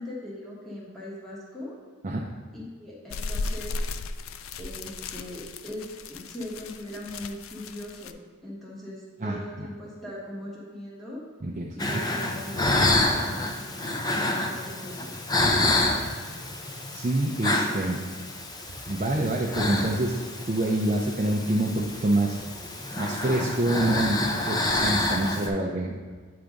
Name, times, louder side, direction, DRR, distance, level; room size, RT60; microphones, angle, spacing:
voice 1, 0.0-1.8 2.5-3.8 4.6-8.2 8.4-11.2 11.8-15.1, left 1 dB, ahead, -7 dB, 1.3 m, -40 dB
sound 1, 3.1-8.1, left 3 dB, 70° left, 0.4 m, -36 dB
voice 2, 11.4-12.0 15.6-15.7 16.9-18.0 18.9-20.1 20.5-22.4 23.0-26.0, right 1 dB, 35° right, -1 dB, 0.5 m, -26 dB
sound 2, 11.8-25.5, left 2 dB, 20° left, 0.5 m, -28 dB
8.7 x 3.5 x 5.1 m, 1.5 s
head